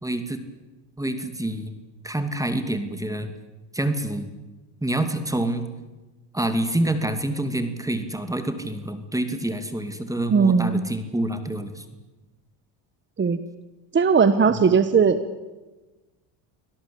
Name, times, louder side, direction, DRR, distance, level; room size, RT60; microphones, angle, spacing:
voice 1, 0.0-0.4 1.0-1.7 2.0-3.3 3.7-4.3 4.8-5.6 6.3-11.8 14.5-14.6, right 1 dB, 5° right, 8 dB, 2.6 m, -27 dB
voice 2, 10.3-10.8 13.2-13.4 13.9-15.2, right 5 dB, 25° right, 11 dB, 1.3 m, -18 dB
25.5 x 17.5 x 8.7 m, 1.1 s
supercardioid pair, 105°, 45 cm